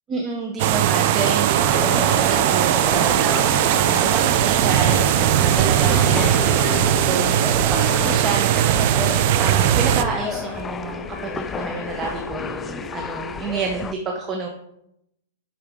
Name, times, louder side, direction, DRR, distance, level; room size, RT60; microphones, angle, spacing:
voice 1, 0.1-14.5, right 4 dB, 20° right, 1 dB, 0.9 m, -29 dB
sound 1, 0.6-13.4, left 3 dB, 45° left, 1.8 m, -40 dB
sound 2, 0.6-10.0, right 11 dB, 50° right, 0.5 m, -19 dB
sound 3, 1.6-13.9, left 6 dB, 15° left, 0.3 m, -31 dB
10.5 x 4.4 x 3.7 m, 0.79 s
hypercardioid pair, 150°, 0 cm